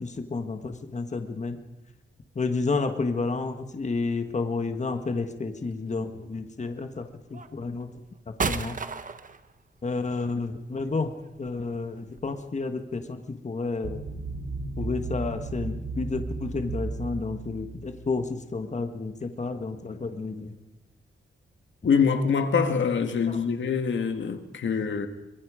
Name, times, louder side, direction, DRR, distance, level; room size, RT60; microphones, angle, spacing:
voice 1, 0.0-1.6 2.3-7.9 8.3-8.8 9.8-11.1 11.4-14.0 14.8-20.5 23.3-23.4, left 3 dB, 35° left, 7 dB, 1.6 m, -31 dB
sound 1, 2.3-2.4 3.1-3.7 5.1-5.7 6.6-6.8 7.3-12.7, right 5 dB, 45° right, 1.1 m, -36 dB
sound 2, 13.8-18.5, right 3 dB, 80° right, 3.9 m, -35 dB
voice 2, 21.8-25.1, left 6 dB, 80° left, 7 dB, 1.8 m, -24 dB
24.5 x 22.5 x 5.0 m, 0.95 s
wide cardioid pair, 105°, 19 cm